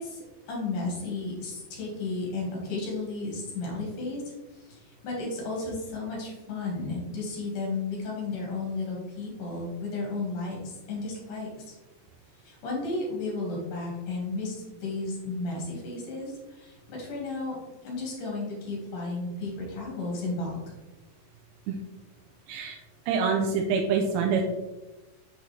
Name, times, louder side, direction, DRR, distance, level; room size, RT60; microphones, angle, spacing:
voice 1, 0.0-4.2 4.5-11.5 12.4-14.6 14.8-17.6 17.8-20.6, left 3 dB, 55° left, -2 dB, 2.8 m, -33 dB
voice 2, 22.5-22.8 23.1-24.4, right 5 dB, 85° right, 1 dB, 2.8 m, -26 dB
7.2 x 5.1 x 3.2 m, 1.1 s
omnidirectional pair, 5.1 m